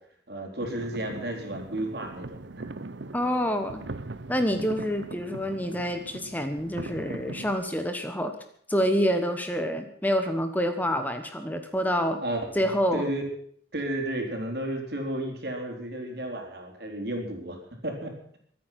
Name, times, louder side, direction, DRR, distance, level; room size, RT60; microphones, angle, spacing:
voice 1, 0.3-2.6 12.2-12.4 12.9-13.2 13.7-18.4, right 1 dB, 60° right, 2 dB, 4.1 m, -33 dB
sound 1, 0.6-7.5, right 2 dB, 80° right, 0.9 m, -40 dB
voice 2, 3.1-3.8 4.3-8.3 8.7-12.2 12.5-13.0, equal, 10° left, 7 dB, 1.1 m, -27 dB
23.0 x 9.4 x 5.8 m, 0.62 s
head